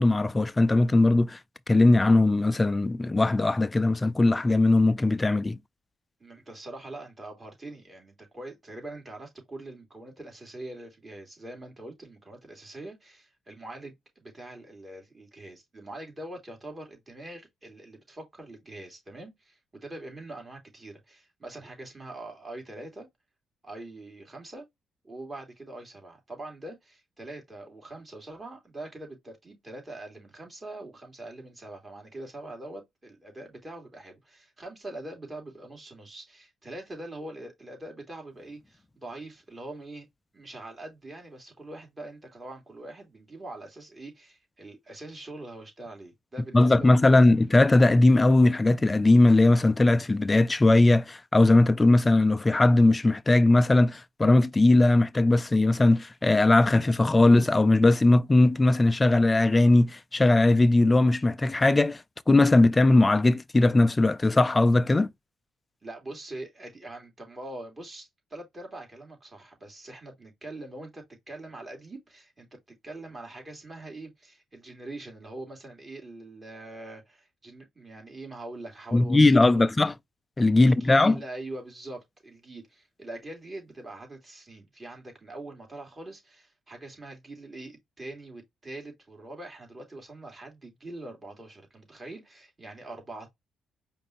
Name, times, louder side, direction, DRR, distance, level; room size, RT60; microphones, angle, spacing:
voice 1, 0.0-1.4 1.7-5.6 46.5-65.1 78.9-79.9 80.4-81.2, left 2 dB, 20° left, 0.4 m, -20 dB
voice 2, 6.2-23.1 23.6-24.6 25.0-40.1 40.3-47.2 65.8-72.5 72.8-79.7 80.6-93.3, right 2 dB, 25° right, 2.9 m, -43 dB
5.1 x 2.6 x 3.0 m
cardioid pair, 90°, 0 cm